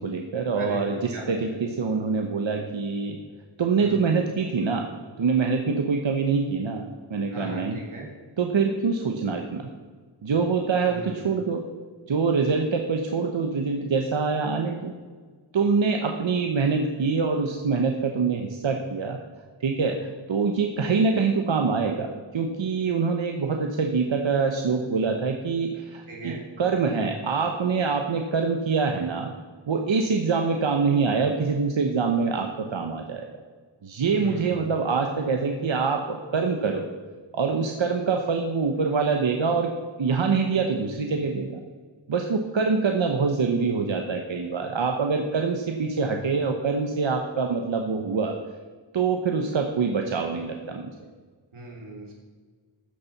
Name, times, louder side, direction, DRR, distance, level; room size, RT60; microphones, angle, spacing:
voice 1, 0.0-3.2 3.6-4.8 5.2-7.8 8.4-9.7 10.2-11.7 12.1-14.9 15.5-19.2 19.6-29.3 29.7-33.3 33.8-36.9 37.3-39.7 40.0-41.6 42.1-48.3 48.9-50.9, right 5 dB, 70° right, 3 dB, 1.0 m, -25 dB
voice 2, 0.5-1.4 3.8-4.0 7.3-8.1 10.8-11.2 26.1-26.4 34.1-34.7 51.5-52.1, right 1 dB, 85° right, -3 dB, 3.3 m, -38 dB
13.0 x 6.9 x 5.8 m, 1.5 s
wide cardioid pair, 85°, 48 cm